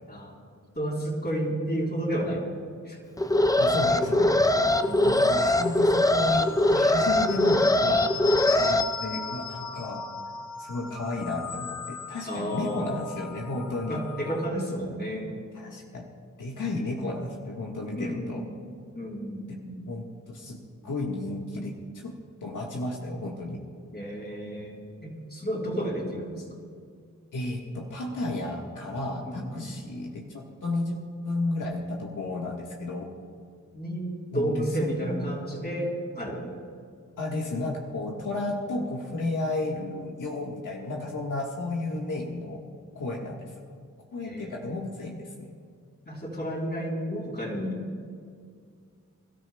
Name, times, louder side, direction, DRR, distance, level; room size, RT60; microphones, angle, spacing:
voice 1, 0.8-2.5 2.9-3.0 4.8-5.2 12.3-13.0 13.9-15.3 17.9-18.4 18.9-19.8 23.9-24.8 25.0-26.4 29.3-29.8 33.7-36.5 44.2-44.6 46.1-47.8, equal, 30° left, -2 dB, 3.7 m, -31 dB
Alarm, 3.2-8.8, left 1 dB, 10° left, 0.5 m, -22 dB
voice 2, 3.6-4.7 5.0-8.1 8.5-10.0 10.6-14.0 15.5-16.1 16.4-18.4 19.5-19.6 19.9-22.2 22.4-23.6 27.3-31.0 31.2-33.1 34.3-35.3 37.2-42.6 42.9-43.5 44.1-45.5, left 2 dB, 85° left, -2 dB, 1.5 m, -33 dB
sound 1, 4.7-14.5, left 6 dB, 55° left, 1.6 m, -38 dB
26.5 x 13.0 x 2.3 m, 2.2 s
cardioid pair, 70°, 31 cm